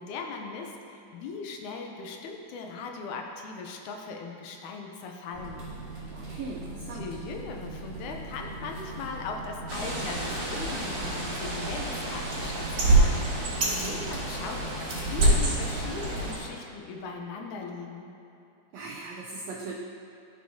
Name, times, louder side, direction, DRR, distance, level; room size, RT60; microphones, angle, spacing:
voice 1, 0.0-5.7 6.9-18.1, left 4 dB, 75° left, 2 dB, 2.1 m, -39 dB
sound 1, 5.3-16.3, right 2 dB, 25° right, 0.8 m, -40 dB
voice 2, 6.1-7.1 13.6-14.0 18.7-19.7, right 3 dB, 85° right, -2 dB, 1.4 m, -39 dB
Bird, 9.7-16.4, right 2 dB, 55° right, 2.5 m, -27 dB
13.0 x 6.1 x 2.8 m, 2.9 s
omnidirectional pair, 3.6 m